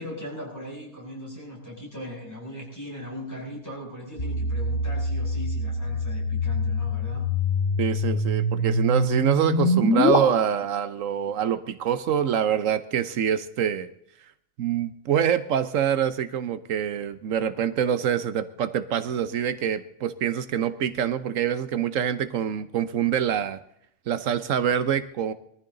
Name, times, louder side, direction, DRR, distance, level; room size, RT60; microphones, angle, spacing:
voice 1, 0.0-7.3, left 1 dB, 15° left, -3 dB, 7.2 m, -38 dB
sound 1, 4.2-10.2, left 2 dB, 65° left, 2.5 m, -25 dB
voice 2, 7.8-13.9 14.6-23.6 24.1-25.3, right 9 dB, 85° right, 12 dB, 1.2 m, -25 dB
22.0 x 14.5 x 3.9 m, 0.73 s
omnidirectional pair, 1.3 m